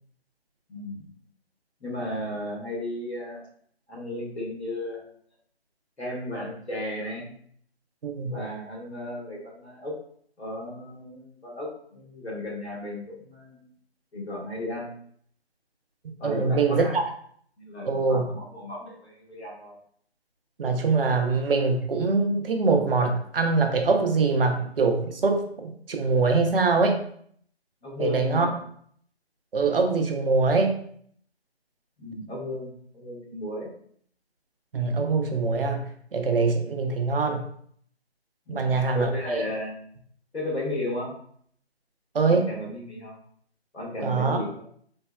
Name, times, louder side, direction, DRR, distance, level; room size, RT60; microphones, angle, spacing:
voice 1, 0.7-1.0 1.8-3.4 3.9-5.1 6.0-7.3 8.3-9.9 10.4-13.6 14.1-14.9 16.2-17.0 17.6-19.8 27.8-28.6 32.0-33.7 38.5-39.8 40.3-41.1 42.3-43.1 43.7-44.6, left 1 dB, 80° left, -4 dB, 1.4 m, -34 dB
voice 2, 16.2-17.0 17.9-18.2 20.6-27.0 28.0-28.5 29.5-30.7 34.7-37.4 38.5-39.4 42.1-42.5 44.0-44.4, right 4 dB, 60° right, 4 dB, 0.5 m, -23 dB
3.3 x 2.0 x 2.2 m, 0.62 s
figure-of-eight pair, 165°, 32 cm